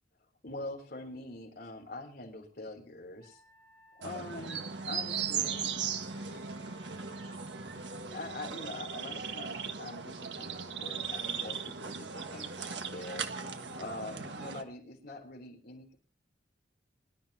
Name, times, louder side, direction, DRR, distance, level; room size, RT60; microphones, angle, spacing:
voice 1, 0.4-3.4 4.0-5.7 7.8-13.3 13.8-15.9, left 2 dB, 55° left, 4 dB, 3.4 m, -44 dB
Wind instrument woodwind instrument, 3.2-8.1, left 1 dB, 50° right, 5.7 m, -60 dB
sound 1, 4.0-14.6, right 6 dB, 75° right, 1.6 m, -38 dB
23.5 x 12.5 x 2.8 m, 0.35 s
head